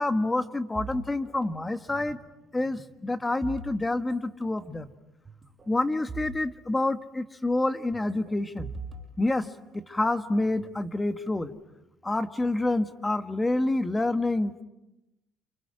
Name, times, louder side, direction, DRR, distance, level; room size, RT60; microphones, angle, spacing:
voice 1, 0.0-2.2 2.5-4.9 5.7-8.7 9.2-11.5 12.0-14.6, left 2 dB, 15° left, 8 dB, 1.6 m, -28 dB
sound 1, 0.8-2.3 2.6-4.2 4.4-4.7 5.3-6.4 6.6-6.7 7.9-10.0 10.6-11.4, right 4 dB, 25° right, 5.7 m, -43 dB
30.0 x 28.5 x 6.3 m, 0.94 s
cardioid pair, 110°, 0 cm